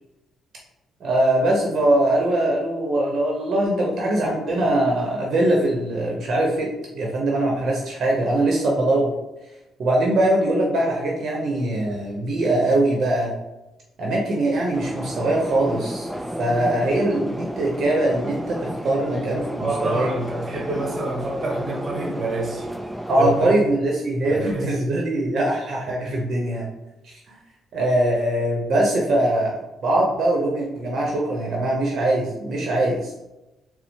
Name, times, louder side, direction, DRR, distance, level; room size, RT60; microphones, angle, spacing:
voice 1, 1.0-6.7 6.9-9.1 9.8-13.3 14.0-16.1 16.4-20.1 23.1-26.7 27.0-27.4 27.7-33.2, right 1 dB, 60° right, 0.8 m, -22 dB
sound 1, 14.7-23.5, equal, 5° right, 0.4 m, -32 dB
voice 2, 19.6-22.7 23.2-23.5 24.2-24.8, right 1 dB, 40° right, 1.1 m, -27 dB
4.1 x 2.0 x 4.3 m
cardioid pair, 90°, 0 cm